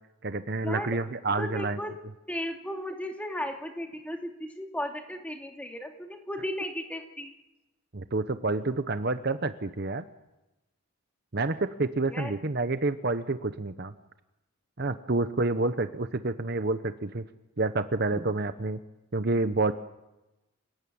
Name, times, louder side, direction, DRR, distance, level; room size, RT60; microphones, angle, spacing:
voice 1, 0.2-1.8 7.9-10.0 11.3-13.9 14.8-17.2 17.6-18.8 19.1-19.7, right 3 dB, 50° right, 10 dB, 0.9 m, -28 dB
voice 2, 1.4-1.9 2.3-7.3 12.1-12.3, left 1 dB, 5° left, 3 dB, 2.7 m, -35 dB
28.0 x 17.5 x 8.8 m, 0.97 s
head